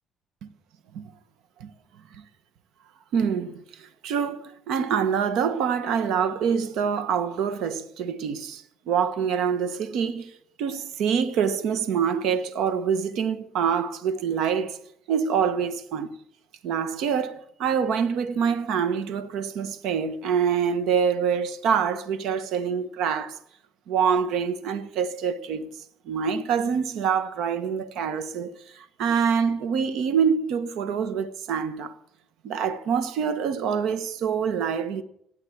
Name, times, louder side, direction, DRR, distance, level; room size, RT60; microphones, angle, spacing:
voice 1, 3.1-10.3 10.6-14.8 15.1-16.1 16.6-23.4 23.9-25.7 26.1-31.9 32.4-35.0, right 7 dB, 75° right, 1.1 m, -25 dB
16.0 x 10.0 x 8.5 m
supercardioid pair, 65°, 0 cm